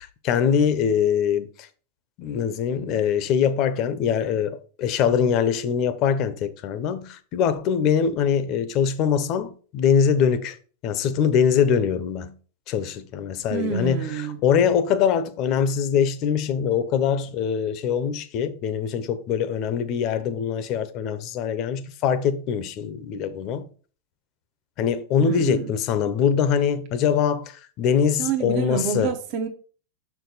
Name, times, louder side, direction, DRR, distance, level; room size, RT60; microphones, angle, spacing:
voice 1, 0.0-1.7 2.2-10.6 10.8-12.4 12.7-14.0 14.4-23.7 24.8-29.1, left 7 dB, 40° left, 0.7 m, -23 dB
voice 2, 13.5-14.4 25.2-25.7 28.2-29.5, right 7 dB, 40° right, 0.8 m, -27 dB
6.2 x 4.7 x 4.0 m
supercardioid pair, 150°, 0 cm